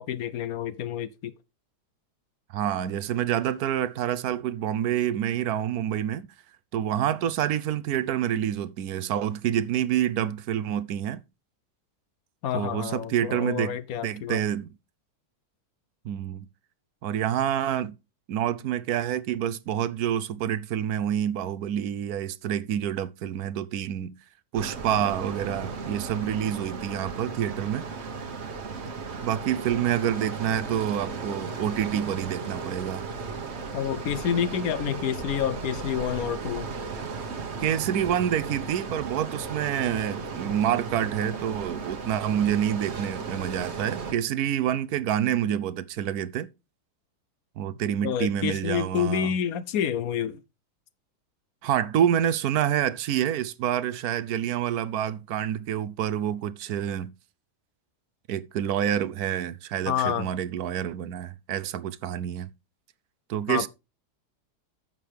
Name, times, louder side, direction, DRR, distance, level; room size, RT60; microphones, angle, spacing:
voice 1, 0.0-1.3 12.4-14.4 33.7-36.7 48.0-50.4 59.9-60.3 63.5-63.7, left 9 dB, 70° left, 1.0 m, -28 dB
voice 2, 2.5-6.3 6.7-11.2 12.5-13.8 14.0-14.7 16.0-16.5 17.0-18.0 18.3-24.1 24.5-27.9 29.2-33.0 37.6-46.5 47.6-49.3 51.6-57.1 58.3-62.5 63.3-63.7, right 10 dB, 70° right, 1.1 m, -27 dB
sound 1, 24.5-44.1, right 4 dB, 45° right, 1.3 m, -35 dB
11.0 x 7.5 x 3.4 m
omnidirectional pair, 1.7 m